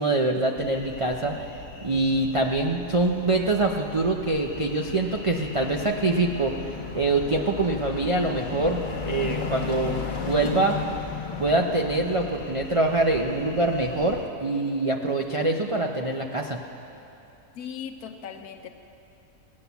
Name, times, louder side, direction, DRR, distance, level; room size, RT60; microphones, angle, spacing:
voice 1, 0.0-1.4 1.8-6.5 6.9-10.8 11.4-16.6, right 2 dB, 50° right, 1 dB, 0.3 m, -24 dB
sound 1, 0.6-14.3, left 5 dB, 35° left, 1.0 m, -36 dB
voice 2, 17.6-18.7, left 8 dB, 75° left, 6 dB, 1.3 m, -38 dB
17.0 x 9.6 x 7.0 m, 2.9 s
omnidirectional pair, 1.6 m